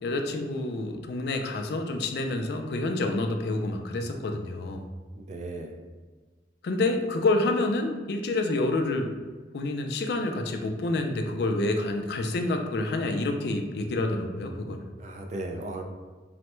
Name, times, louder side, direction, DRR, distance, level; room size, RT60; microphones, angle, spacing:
voice 1, 0.0-4.8 6.6-9.1 9.5-14.8, left 2 dB, 65° left, 4 dB, 0.3 m, -28 dB
voice 2, 5.1-5.7 15.0-15.8, right 2 dB, 40° right, 3 dB, 0.3 m, -36 dB
3.2 x 2.0 x 3.0 m, 1.4 s
head